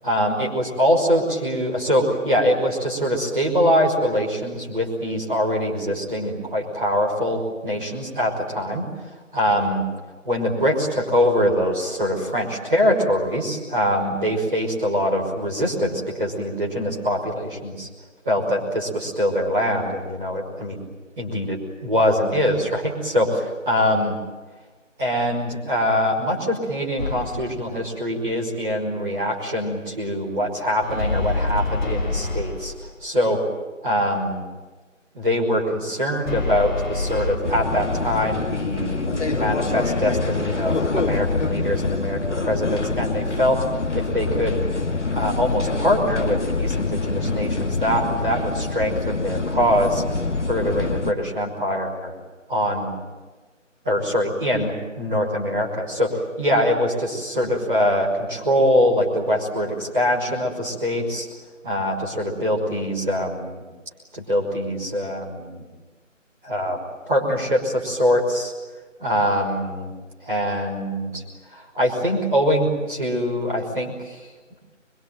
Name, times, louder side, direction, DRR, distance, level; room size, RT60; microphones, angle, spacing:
voice 1, 0.0-8.9 9.3-9.8 10.2-17.9 18.2-20.8 21.2-24.2 25.0-32.7 33.0-33.4 33.8-34.4 35.1-43.6 43.9-44.6 45.1-50.0 50.5-52.1 52.5-53.0 53.8-61.2 61.6-63.6 64.1-65.6 66.4-66.8 67.0-68.5 69.0-69.9 70.2-71.2 71.5-74.2, equal, ahead, -14 dB, 1.2 m, -23 dB
sound 1, 27.0-27.6 30.8-32.9 36.2-37.4, left 3 dB, 40° left, 6.0 m, -26 dB
sound 2, 37.4-51.1, left 3 dB, 65° left, 2.6 m, -25 dB
24.0 x 24.0 x 9.1 m, 1.3 s
figure-of-eight pair, 165°, 38 cm